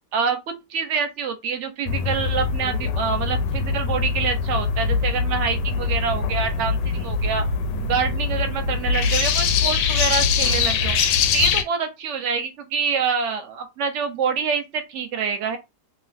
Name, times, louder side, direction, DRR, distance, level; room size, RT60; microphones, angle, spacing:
voice 1, 0.7-7.4 7.8-11.0 11.3-15.6, right 6 dB, 65° right, 0.8 m, -26 dB
sound 1, 1.9-11.6, left 5 dB, 85° left, 1.2 m, -23 dB
2.8 x 2.5 x 3.3 m
omnidirectional pair, 1.8 m